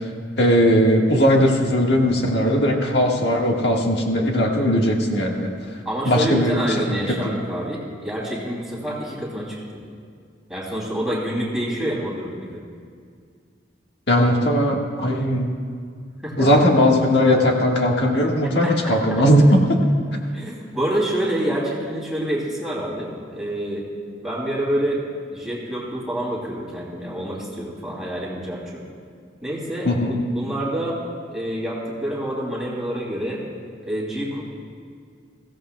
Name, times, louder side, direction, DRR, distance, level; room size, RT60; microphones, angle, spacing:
voice 1, 0.4-5.5 6.0-7.3 14.1-15.5 16.4-19.8 29.8-30.1, equal, 65° left, 0 dB, 1.5 m, -18 dB
voice 2, 5.8-9.8 10.5-12.6 16.2-16.5 18.6-19.2 20.3-23.9 24.2-25.0 25.3-28.8 29.4-31.0 31.3-33.4 33.8-34.4, right 1 dB, ahead, -5 dB, 2.8 m, -27 dB
22.0 x 15.5 x 2.2 m, 2.2 s
head